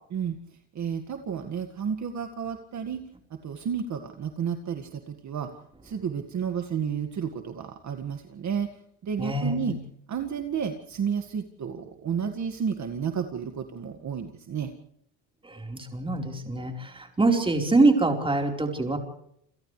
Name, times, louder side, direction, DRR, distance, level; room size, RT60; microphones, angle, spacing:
voice 1, 0.8-3.0 3.4-5.5 5.8-8.7 9.0-9.8 10.1-14.7, right 7 dB, 40° right, 5 dB, 2.0 m, -31 dB
voice 2, 9.2-9.7 15.4-19.0, right 2 dB, 10° right, 3 dB, 4.4 m, -24 dB
29.5 x 27.5 x 3.3 m, 0.69 s
cardioid pair, 150°, 43 cm